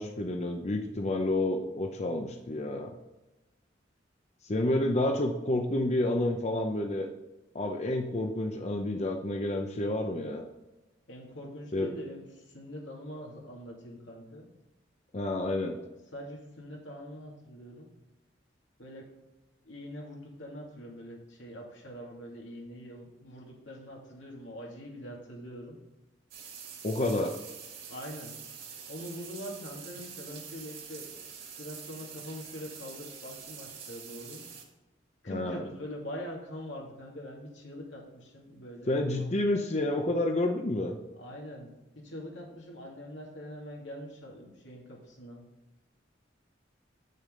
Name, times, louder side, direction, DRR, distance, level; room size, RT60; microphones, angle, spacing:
voice 1, 0.0-3.0 4.4-7.1 7.5-10.4 11.7-11.9 15.1-15.8 26.8-27.3 35.3-35.6 38.9-41.0, left 1 dB, 35° left, 4 dB, 0.6 m, -29 dB
voice 2, 11.1-14.5 16.1-17.9 18.8-19.1 19.6-25.8 27.9-28.3 28.9-31.1 31.6-34.4 35.2-38.9 41.1-41.7 41.9-45.4, equal, 85° left, -1 dB, 2.5 m, -43 dB
sound 1, 26.3-34.6, right 7 dB, 60° right, 2.2 m, -45 dB
8.4 x 6.5 x 3.8 m, 1.1 s
head